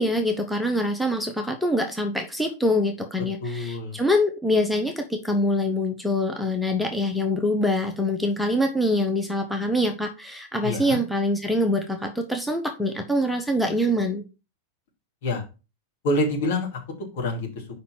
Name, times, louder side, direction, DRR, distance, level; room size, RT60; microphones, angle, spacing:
voice 1, 0.0-14.2, left 1 dB, ahead, 3 dB, 0.9 m, -24 dB
voice 2, 3.4-4.0 10.6-11.0 15.2-15.4 16.0-16.8 17.1-17.5, left 1 dB, 55° left, 0 dB, 2.4 m, -26 dB
5.1 x 4.3 x 6.0 m, 0.31 s
figure-of-eight pair, 90°, 0 cm